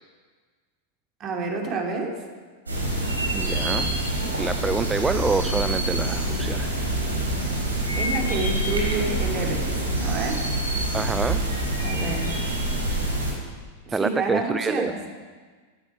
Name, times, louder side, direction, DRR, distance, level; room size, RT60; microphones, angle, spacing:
voice 1, 1.2-2.2 7.9-10.4 11.8-12.2 13.8-14.9, right 3 dB, 35° right, 1 dB, 3.3 m, -29 dB
sound 1, 2.7-13.3, right 1 dB, 80° right, 3.9 m, -26 dB
voice 2, 3.3-6.7 10.9-11.4 13.9-14.9, right 4 dB, 10° right, 12 dB, 0.4 m, -27 dB
16.5 x 13.5 x 4.9 m, 1.5 s
figure-of-eight pair, 90°, 0 cm